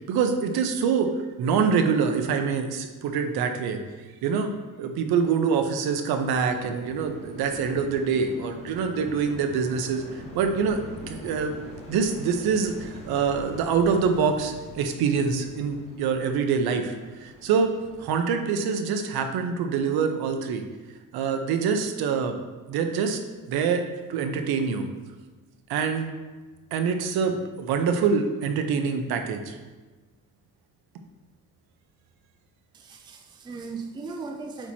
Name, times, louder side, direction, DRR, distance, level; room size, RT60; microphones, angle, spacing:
voice 1, 0.1-1.1 1.4-3.8 4.2-4.5 4.8-10.8 11.1-11.5 11.9-17.0 17.2-17.7 18.0-20.6 21.1-22.3 22.7-23.2 23.5-23.8 24.1-24.9 25.7-26.1 26.7-29.6, right 6 dB, 75° right, 6 dB, 0.8 m, -25 dB
sound 1, 6.3-18.2, left 2 dB, 15° left, 1.0 m, -43 dB
voice 2, 32.7-34.7, right 4 dB, 10° right, 3 dB, 0.4 m, -37 dB
8.9 x 3.0 x 4.3 m, 1.3 s
cardioid pair, 170°, 38 cm